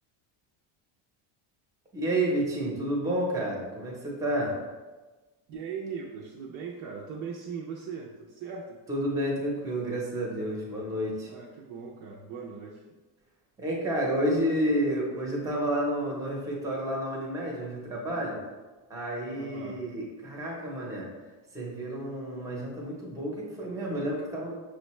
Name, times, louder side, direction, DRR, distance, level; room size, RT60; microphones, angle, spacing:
voice 1, 1.9-4.6 8.9-11.3 13.6-18.4 18.9-21.1 21.5-24.5, right 1 dB, 5° right, -3 dB, 0.7 m, -30 dB
voice 2, 5.5-8.8 11.3-12.8 19.4-19.8, right 6 dB, 45° right, -4 dB, 0.4 m, -39 dB
6.2 x 2.1 x 3.0 m, 1.2 s
cardioid pair, 165°, 46 cm